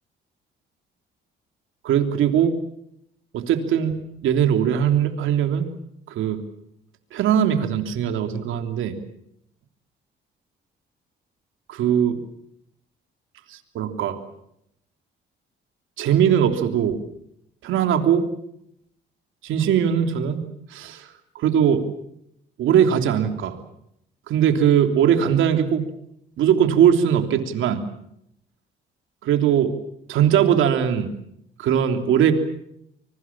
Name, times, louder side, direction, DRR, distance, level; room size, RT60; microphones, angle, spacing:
voice 1, 1.8-2.5 3.3-5.7 6.1-6.4 7.1-9.0 11.7-12.2 13.5-14.2 16.0-17.0 17.6-18.3 19.4-20.4 20.7-21.1 21.3-21.8 22.6-23.6 24.3-25.9 26.4-27.8 29.2-29.7 30.1-31.1 31.6-32.3, right 9 dB, 85° right, 6 dB, 3.2 m, -20 dB
25.0 x 23.0 x 7.4 m, 0.75 s
cardioid pair, 90°, 20 cm